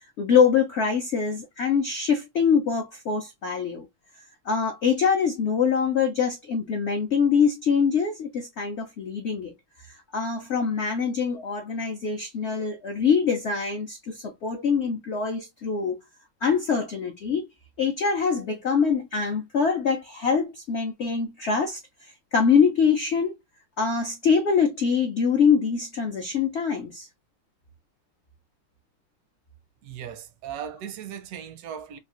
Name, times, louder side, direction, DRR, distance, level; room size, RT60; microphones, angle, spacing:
voice 1, 0.2-3.9 4.5-9.5 9.8-16.0 16.4-17.5 17.8-23.4 23.8-27.1, left 6 dB, 80° left, 0.6 m, -24 dB
voice 2, 29.8-32.0, right 9 dB, 75° right, 0.8 m, -37 dB
3.6 x 2.4 x 2.4 m
omnidirectional pair, 1.9 m